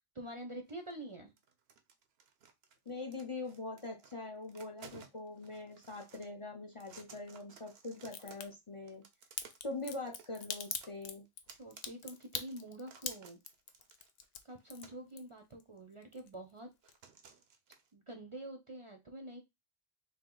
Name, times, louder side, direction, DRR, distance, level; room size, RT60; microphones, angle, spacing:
voice 1, 0.1-1.3 11.6-13.4 14.4-16.7 17.9-19.4, right 1 dB, 35° right, 4 dB, 0.6 m, -46 dB
sound 1, 0.7-1.1 1.4-4.1 4.4-6.3 6.7-8.6 8.9-15.1 15.8-15.9 16.8-17.9, right 6 dB, 75° right, 0.9 m, -58 dB
voice 2, 2.9-9.0 9.6-11.3, left 3 dB, 35° left, 1 dB, 0.6 m, -43 dB
Crack, 8.1-8.5 9.4-15.6 15.9-16.6 16.9-17.0, left 7 dB, 80° left, 0.8 m, -42 dB
3.5 x 2.7 x 3.8 m, 0.22 s
omnidirectional pair, 1.1 m